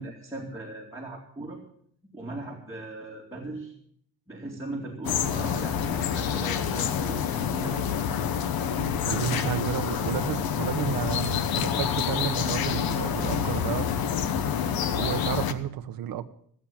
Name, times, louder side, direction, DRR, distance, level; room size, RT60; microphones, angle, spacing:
voice 1, 0.0-1.6 2.1-3.7 4.3-8.4 9.3-9.6, right 2 dB, 10° right, 2.4 m, -39 dB
sound 1, 5.0-15.5, left 8 dB, 90° left, 1.0 m, -27 dB
voice 2, 9.1-13.9 15.0-16.2, right 11 dB, 75° right, 1.0 m, -32 dB
15.5 x 8.5 x 7.3 m
cardioid pair, 145°, 35 cm